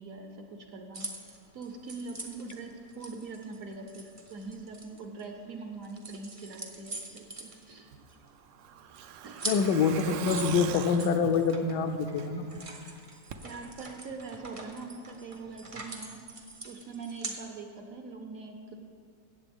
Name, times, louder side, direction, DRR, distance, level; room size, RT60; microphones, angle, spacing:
voice 1, 0.0-7.9 9.2-9.6 13.4-18.7, right 3 dB, 60° right, 4 dB, 1.0 m, -43 dB
sound 1, 0.9-5.5 5.8-8.3 8.6-8.7 8.9-17.4, right 2 dB, 40° right, 0.4 m, -43 dB
Truck, 7.9-12.6 12.9-13.0 13.3-13.4, right 8 dB, 80° right, 1.3 m, -41 dB
voice 2, 9.4-12.5, left 5 dB, 75° left, 7 dB, 1.2 m, -26 dB
16.0 x 7.7 x 3.5 m, 2.1 s
omnidirectional pair, 2.0 m